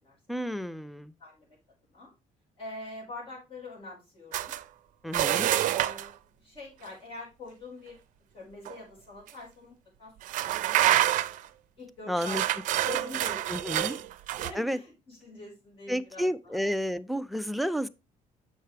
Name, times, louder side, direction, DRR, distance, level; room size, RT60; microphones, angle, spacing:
voice 1, 0.3-1.1 5.0-5.5 12.1-12.4 13.5-13.9 14.6-14.8 15.9-17.9, equal, ahead, 0.3 m, -31 dB
voice 2, 1.2-1.6 1.9-2.1 2.6-4.5 5.0-8.0 8.3-10.1 10.4-10.9 11.3-11.5 11.8-14.1 14.3-16.6, left 2 dB, 40° left, 5.0 m, -45 dB
sound 1, 4.3-4.6 5.1-6.1 8.7-8.8 9.3-9.4 10.2-11.5 12.2-14.5, right 13 dB, 70° right, 0.4 m, -27 dB
7.3 x 5.7 x 3.3 m
cardioid pair, 150°, 14 cm